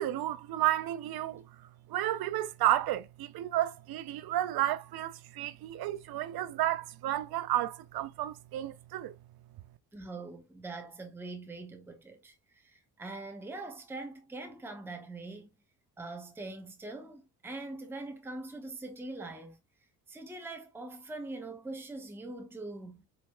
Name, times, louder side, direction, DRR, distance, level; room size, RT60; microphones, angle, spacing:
voice 1, 0.0-1.4 1.9-9.1, right 13 dB, 55° right, 0.6 m, -32 dB
voice 2, 9.9-15.5 16.0-19.6 20.1-23.1, right 2 dB, 5° right, 0.8 m, -43 dB
4.3 x 2.7 x 2.2 m
hypercardioid pair, 55°, 45 cm